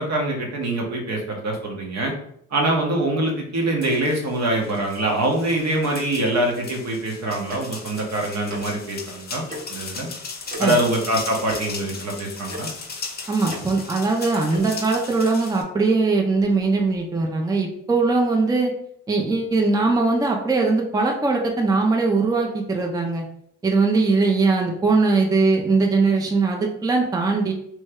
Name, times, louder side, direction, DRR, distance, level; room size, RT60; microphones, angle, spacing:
voice 1, 0.0-2.1 2.5-9.4 9.7-10.1 10.6-12.7, right 1 dB, 60° right, 0 dB, 1.0 m, -24 dB
sound 1, 3.8-15.6, left 4 dB, 30° left, 0.6 m, -37 dB
Tick-tock, 7.5-7.6 8.5-8.6 9.5-9.6 10.5-10.6 11.5-11.6 12.5-12.6 13.5-13.6 14.5-14.7, right 1 dB, 30° right, 0.9 m, -35 dB
voice 2, 13.3-18.7 19.1-23.3 23.6-27.5, right 3 dB, 10° right, 1 dB, 0.5 m, -20 dB
3.1 x 2.1 x 3.5 m, 0.70 s
cardioid pair, 90°, 30 cm